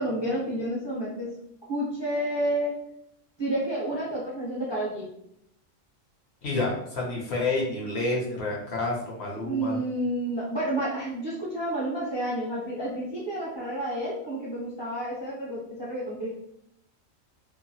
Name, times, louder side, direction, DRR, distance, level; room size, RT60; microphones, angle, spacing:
voice 1, 0.0-1.3 1.6-2.8 3.4-5.1 9.4-16.3, right 1 dB, 30° right, -6 dB, 0.6 m, -30 dB
voice 2, 6.4-9.8, left 2 dB, 60° left, -2 dB, 0.9 m, -29 dB
2.9 x 2.1 x 2.6 m, 0.75 s
omnidirectional pair, 1.3 m